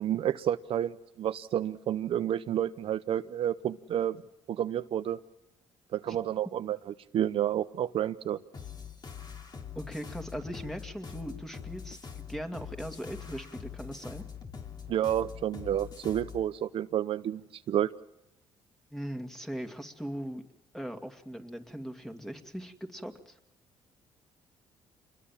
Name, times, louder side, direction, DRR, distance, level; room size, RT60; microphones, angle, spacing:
voice 1, 0.0-4.2 4.5-5.2 5.9-6.8 7.1-8.4 14.9-17.9, right 10 dB, 60° right, 10 dB, 0.8 m, -30 dB
sound 1, 8.5-16.4, left 7 dB, 40° left, 3.3 m, -43 dB
voice 2, 9.7-12.0 12.3-14.2 18.9-20.4 20.7-23.4, equal, 5° left, 4 dB, 2.4 m, -39 dB
27.5 x 21.5 x 7.3 m, 0.86 s
cardioid pair, 100°, 10 cm